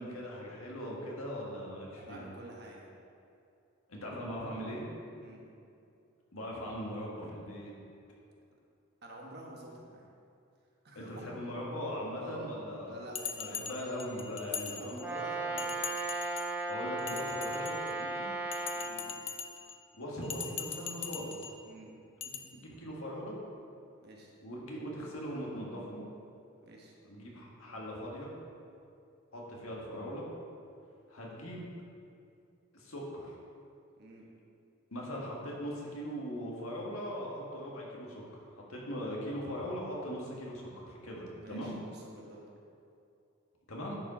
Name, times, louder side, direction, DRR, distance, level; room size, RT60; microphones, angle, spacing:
voice 1, 0.0-2.2 3.9-4.9 6.3-7.7 11.0-13.0 13.4-15.0 16.7-18.3 19.9-21.5 22.2-23.4 24.4-26.0 27.1-28.3 29.3-30.3 31.1-31.7 32.7-33.4 34.9-41.8 43.7-43.9, equal, 85° left, -3 dB, 1.8 m, -40 dB
voice 2, 2.0-2.9 5.1-5.5 9.0-10.1 10.8-11.5 12.2-12.5 12.8-13.7 14.7-16.1 18.7-19.1 21.6-21.9 24.0-24.3 26.6-26.9 34.0-34.3 41.3-42.5, right 1 dB, 50° right, -2 dB, 1.2 m, -48 dB
Bell, 13.2-15.2 15.6-16.6 17.0-18.0 18.5-19.8 20.2-21.6 22.2-22.4, left 7 dB, 25° left, 0.4 m, -41 dB
Brass instrument, 15.0-19.0, right 2 dB, 10° right, 0.8 m, -36 dB
10.5 x 5.1 x 4.3 m, 2.5 s
head